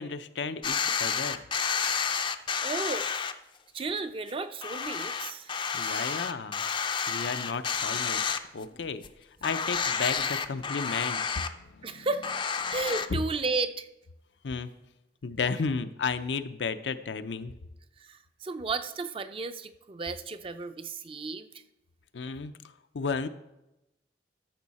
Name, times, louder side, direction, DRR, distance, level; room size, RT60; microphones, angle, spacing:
voice 1, 0.0-1.4 5.7-6.6 7.1-9.0 9.4-11.2 11.5-12.1 12.6-12.7 14.4-14.7 15.2-17.5 22.1-22.6 22.9-23.3, left 5 dB, 85° left, 10 dB, 0.6 m, -33 dB
sound 1, 0.6-3.3 3.8-3.9 4.3-4.4 4.6-8.8 9.0-9.1 9.4-11.5 12.2-13.1, left 6 dB, 30° left, 0.4 m, -30 dB
voice 2, 2.6-3.1 3.7-5.5 5.8-6.3 11.8-12.3 12.7-13.9 18.0-21.6, right 3 dB, 30° right, 10 dB, 0.5 m, -33 dB
13.0 x 6.3 x 4.1 m, 0.93 s
head